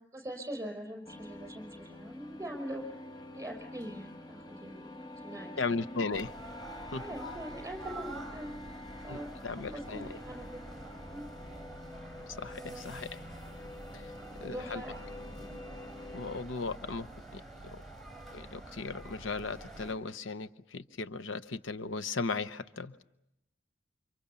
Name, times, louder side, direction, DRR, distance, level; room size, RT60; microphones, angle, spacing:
voice 1, 0.1-2.8 3.3-5.8 6.9-8.5 9.0-11.7 12.5-12.9 13.9-15.3, right 1 dB, 15° right, 4 dB, 5.8 m, -43 dB
sound 1, 1.0-16.4, left 2 dB, 25° left, 1.4 m, -47 dB
voice 2, 5.6-6.3 6.9-7.0 9.1-10.2 12.4-13.2 13.9-14.0 14.4-14.8 16.1-17.1 17.3-17.4 17.7-17.8 18.3-23.0, left 4 dB, 90° left, 12 dB, 0.9 m, -36 dB
sound 2, 6.1-19.9, right 1 dB, ahead, 4.7 m, -47 dB
29.5 x 26.0 x 6.9 m, 0.87 s
head